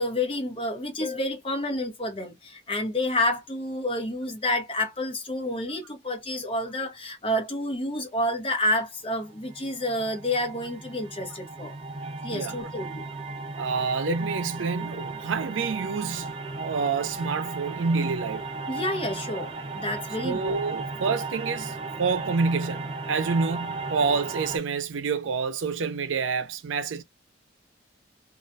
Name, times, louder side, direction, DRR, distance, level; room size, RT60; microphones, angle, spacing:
voice 1, 0.0-11.7 12.2-13.0 18.7-20.6, left 1 dB, 30° left, 0.9 m, -29 dB
sound 1, 9.2-24.6, right 3 dB, 30° right, 0.5 m, -36 dB
voice 2, 13.6-18.4 20.2-27.0, right 4 dB, 90° right, 0.5 m, -28 dB
2.4 x 2.2 x 2.6 m
head